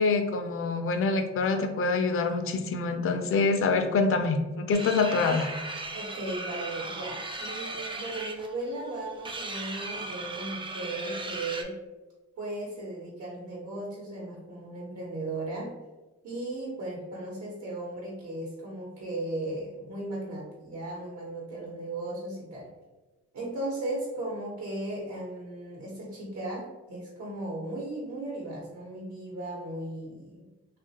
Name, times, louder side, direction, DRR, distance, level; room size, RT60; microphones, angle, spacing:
voice 1, 0.0-5.5, left 4 dB, 45° left, 6 dB, 0.4 m, -26 dB
sound 1, 4.7-11.6, right 2 dB, 15° right, 0.3 m, -37 dB
voice 2, 5.9-11.7 12.4-15.7 16.2-22.7 23.3-30.5, right 2 dB, 70° right, -5 dB, 1.0 m, -36 dB
3.0 x 2.4 x 2.8 m, 1.1 s
cardioid pair, 90°, 30 cm